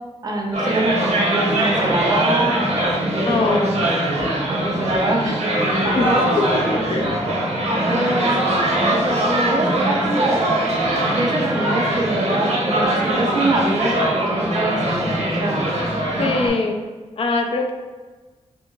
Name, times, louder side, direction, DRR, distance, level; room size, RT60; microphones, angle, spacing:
voice 1, 0.2-2.6 3.2-3.8 4.3-8.4 8.9-10.4 11.1-15.6 16.2-16.3, right 1 dB, 35° right, -1 dB, 0.5 m, -25 dB
sound 1, 0.5-16.5, right 1 dB, 70° right, 0.8 m, -21 dB
voice 2, 3.2-3.8 6.0-6.1 6.9-7.2 16.2-16.8 17.2-17.7, left 3 dB, 55° left, 3 dB, 0.4 m, -22 dB
2.8 x 2.6 x 3.7 m, 1.3 s
wide cardioid pair, 175°, 12 cm